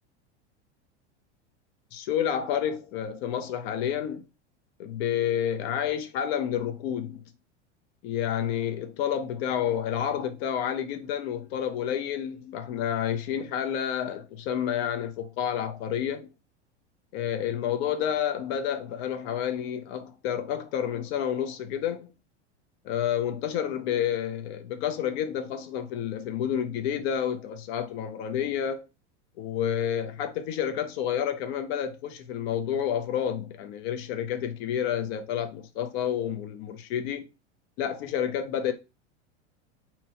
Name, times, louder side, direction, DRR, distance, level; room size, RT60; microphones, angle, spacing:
voice 1, 1.9-4.3 4.8-7.2 8.0-16.3 17.1-22.1 22.8-28.8 29.4-37.3 37.8-38.7, left 9 dB, 60° left, 0.7 m, -29 dB
2.9 x 2.7 x 4.3 m
hypercardioid pair, 115°, 35 cm